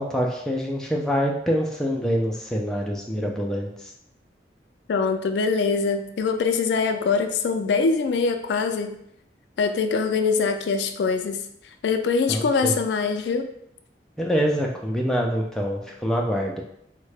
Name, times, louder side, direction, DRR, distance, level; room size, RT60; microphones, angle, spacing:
voice 1, 0.0-3.9 12.3-12.8 14.2-16.6, equal, 5° left, -1 dB, 0.3 m, -25 dB
voice 2, 4.9-9.0 9.6-11.4 11.8-13.5, left 4 dB, 80° left, 7 dB, 0.3 m, -23 dB
3.6 x 2.1 x 3.2 m, 0.74 s
head